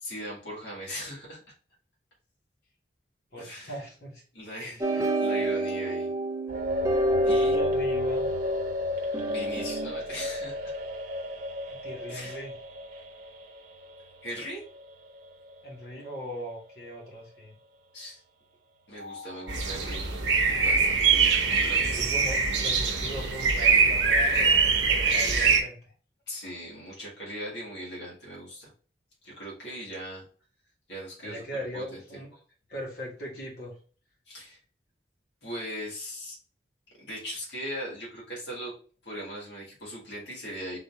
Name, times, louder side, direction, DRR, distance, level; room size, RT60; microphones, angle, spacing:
voice 1, 0.0-1.4 3.4-3.8 4.3-6.1 7.2-7.5 9.2-10.7 12.1-12.4 14.2-14.6 17.9-18.2 18.9-20.0 20.5-22.0 26.3-28.7 29.2-30.2 30.9-31.4 31.7-32.0 34.3-34.6 35.4-36.4 37.0-38.7 39.0-40.8, equal, 75° left, -5 dB, 1.8 m, -39 dB
voice 2, 3.3-4.2 4.6-4.9 7.4-8.3 11.7-12.6 15.6-17.6 21.8-25.8 31.2-32.4 32.7-33.7, equal, 60° left, -4 dB, 1.6 m, -39 dB
sound 1, 4.8-9.9, right 1 dB, 15° right, 0.5 m, -28 dB
sound 2, 6.5-17.1 17.4-17.5 19.0-20.9, left 1 dB, 50° right, 0.9 m, -36 dB
sound 3, 19.5-25.6, right 5 dB, 85° right, 0.8 m, -23 dB
3.8 x 2.9 x 3.5 m, 0.40 s
head